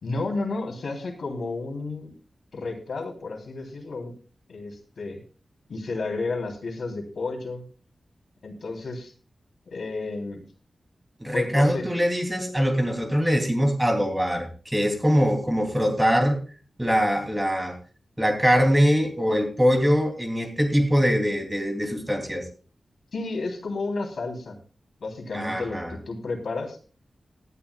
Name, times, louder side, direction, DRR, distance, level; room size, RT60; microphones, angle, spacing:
voice 1, 0.0-2.1 2.5-4.1 4.5-5.2 5.7-7.6 8.4-9.1 9.7-10.4 11.3-11.9 23.1-24.6 25.0-26.8, left 3 dB, 75° left, 2 dB, 3.4 m, -32 dB
voice 2, 11.2-16.4 16.8-17.7 18.2-22.4 25.3-25.9, equal, 10° right, 4 dB, 2.9 m, -22 dB
18.5 x 12.0 x 2.3 m, 0.37 s
wide cardioid pair, 130°, 0 cm